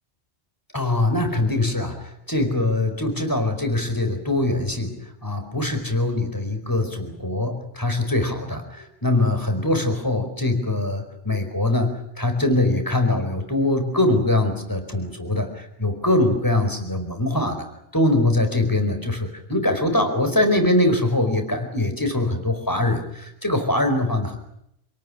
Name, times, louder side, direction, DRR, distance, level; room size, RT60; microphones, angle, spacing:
voice 1, 0.7-4.9 5.2-17.7 17.9-24.4, left 2 dB, 15° left, 5 dB, 4.6 m, -22 dB
28.0 x 18.5 x 10.0 m, 0.78 s
omnidirectional pair, 1.2 m